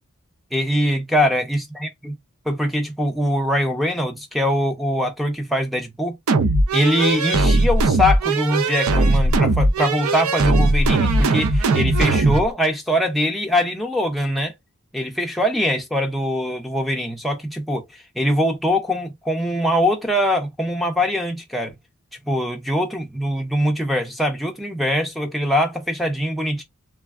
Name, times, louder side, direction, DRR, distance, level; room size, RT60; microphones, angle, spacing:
voice 1, 0.5-2.1 2.5-6.2 6.7-14.5 14.9-21.7 22.3-26.6, equal, ahead, 0.5 m, -22 dB
sound 1, 6.3-12.5, right 2 dB, 70° right, 0.5 m, -19 dB
3.3 x 2.2 x 2.3 m
head